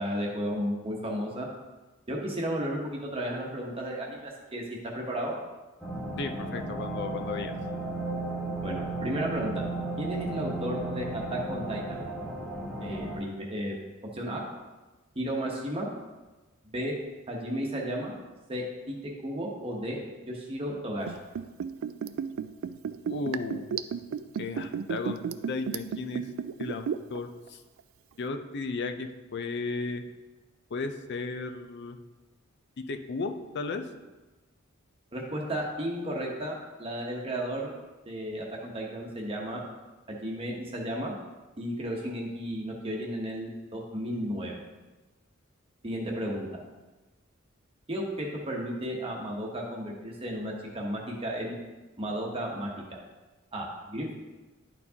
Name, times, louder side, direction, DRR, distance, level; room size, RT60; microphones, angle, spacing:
voice 1, 0.0-1.5 2.1-4.6 4.9-5.3 8.6-9.6 10.0-12.0 12.8-13.8 14.1-14.4 15.1-15.9 16.6-16.9 17.3-18.2 18.5-20.0 20.3-21.1 35.1-37.7 38.0-39.6 40.1-41.1 41.6-44.6 45.8-46.5 47.9-51.6 52.0-53.0 53.5-54.1, equal, 30° right, -2 dB, 1.0 m, -33 dB
sound 1, 5.8-13.2, right 2 dB, ahead, 1.3 m, -34 dB
voice 2, 6.2-7.6 23.1-23.7 24.4-25.2 25.5-26.3 26.6-27.6 28.2-30.0 30.7-32.0 32.9-33.8, left 3 dB, 55° left, 7 dB, 0.5 m, -34 dB
Liquid, 21.0-27.2 27.5-27.6, right 7 dB, 75° right, 0.3 m, -33 dB
10.5 x 4.5 x 2.8 m, 1.2 s
head